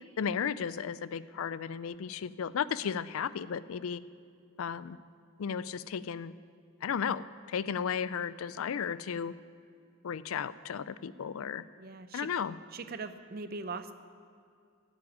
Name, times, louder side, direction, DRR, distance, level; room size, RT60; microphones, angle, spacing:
voice 1, 0.2-4.0 4.6-5.0 5.4-6.3 6.8-9.3 10.0-11.6 12.1-12.5, left 7 dB, 75° left, 17 dB, 0.4 m, -34 dB
voice 2, 11.8-12.4 12.7-13.9, right 4 dB, 45° right, 10 dB, 0.6 m, -41 dB
9.8 x 8.3 x 9.6 m, 2.3 s
head